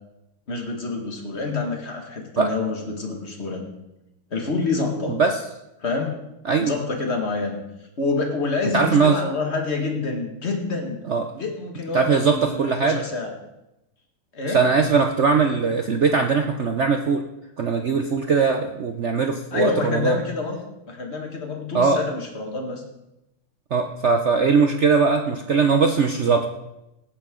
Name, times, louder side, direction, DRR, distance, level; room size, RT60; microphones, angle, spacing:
voice 1, 0.5-3.7 4.3-5.2 5.8-6.2 6.6-7.6 8.0-11.0 11.3-13.3 14.3-14.6 19.5-20.6 20.9-22.8, left 3 dB, 35° left, 3 dB, 2.0 m, -27 dB
voice 2, 8.7-9.2 11.1-11.2 11.9-13.0 14.5-17.2 17.6-20.2 21.7-22.0 23.7-26.5, right 5 dB, 70° right, 5 dB, 0.6 m, -20 dB
18.0 x 9.8 x 3.8 m, 0.89 s
omnidirectional pair, 2.2 m